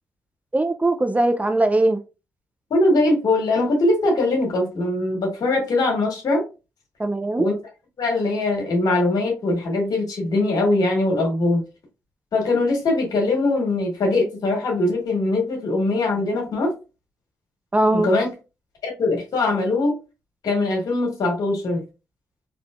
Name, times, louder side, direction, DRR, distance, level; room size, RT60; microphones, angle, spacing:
voice 1, 0.5-2.0 7.0-7.5 17.7-18.1, right 2 dB, 20° right, 0.5 m, -20 dB
voice 2, 2.7-6.4 7.4-7.5 8.0-11.6 12.3-16.7 17.9-18.3 18.8-20.0 20.4-21.8, left 2 dB, 70° left, 1.5 m, -21 dB
3.6 x 2.8 x 2.4 m
supercardioid pair, 55°, 7 cm